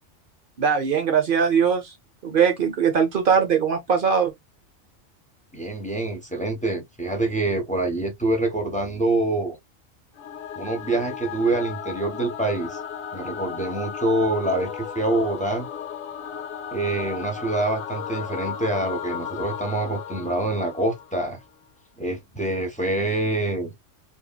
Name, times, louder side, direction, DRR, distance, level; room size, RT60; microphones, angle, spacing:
voice 1, 0.6-1.9 2.2-4.3, right 6 dB, 55° right, 0.7 m, -21 dB
voice 2, 5.5-9.6 10.6-12.8 13.1-15.7 16.7-21.4 22.0-23.7, right 2 dB, 5° left, 0.8 m, -26 dB
Singing / Musical instrument, 10.2-21.4, left 8 dB, 85° left, 1.0 m, -35 dB
2.9 x 2.7 x 2.2 m
omnidirectional pair, 1.3 m